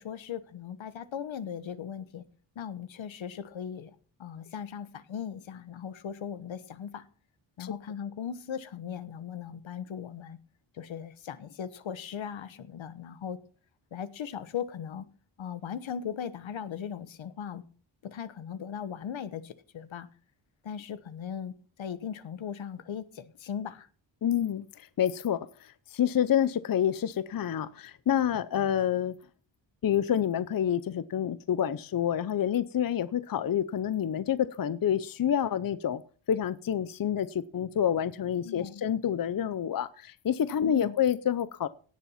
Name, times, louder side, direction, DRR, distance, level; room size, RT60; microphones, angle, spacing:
voice 1, 0.0-2.3 2.5-3.9 4.2-7.0 7.6-10.4 10.7-13.4 13.9-15.1 15.4-17.6 18.0-20.1 20.6-23.9 38.4-38.8 40.6-40.9, left 8 dB, 75° left, 1.3 m, -38 dB
voice 2, 24.2-29.1 29.8-36.0 36.3-41.7, left 9 dB, 45° left, 0.7 m, -28 dB
17.5 x 7.2 x 5.7 m
cardioid pair, 95°, 46 cm